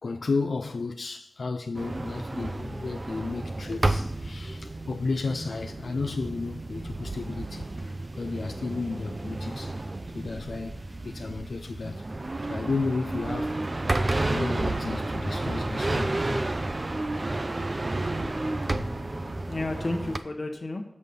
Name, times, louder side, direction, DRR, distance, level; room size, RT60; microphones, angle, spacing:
voice 1, 0.0-9.9 10.1-12.0 12.5-13.6 14.3-16.6, left 4 dB, 85° left, 0.4 m, -33 dB
sound 1, 1.7-20.2, right 2 dB, 45° right, 0.5 m, -31 dB
voice 2, 18.6-20.8, left 2 dB, 55° left, 1.0 m, -33 dB
6.3 x 5.4 x 6.8 m
cardioid pair, 45°, 0 cm